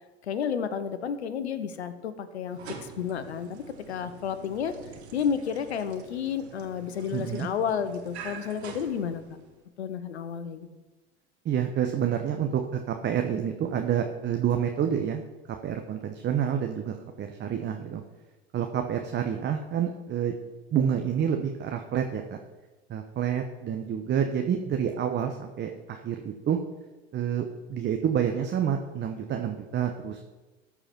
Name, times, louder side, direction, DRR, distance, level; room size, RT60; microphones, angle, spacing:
voice 1, 0.2-4.7 5.1-9.2 9.8-10.7, left 7 dB, 85° left, 11 dB, 0.9 m, -31 dB
sound 1, 2.4-9.6, right 6 dB, 80° right, 1.4 m, -46 dB
voice 2, 7.1-7.5 11.4-15.2 15.5-18.0 18.5-20.3 20.7-22.4 22.9-26.6 27.1-30.2, right 8 dB, 35° right, 5 dB, 1.0 m, -28 dB
14.0 x 4.9 x 5.9 m, 1.2 s
hypercardioid pair, 80°, 32 cm